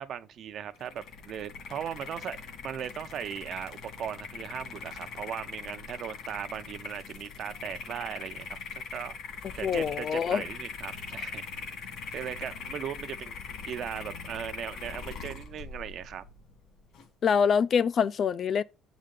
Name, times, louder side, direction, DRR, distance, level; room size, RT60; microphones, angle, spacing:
voice 1, 0.0-2.4 2.6-9.1 9.6-11.4 12.1-13.3 13.7-16.2, right 9 dB, 55° right, 0.6 m, -38 dB
sound 1, 0.7-17.1, left 5 dB, 70° left, 1.9 m, -41 dB
voice 2, 9.6-10.4 17.2-18.6, left 7 dB, 45° left, 0.3 m, -25 dB
7.5 x 5.0 x 3.8 m
cardioid pair, 140°, 0 cm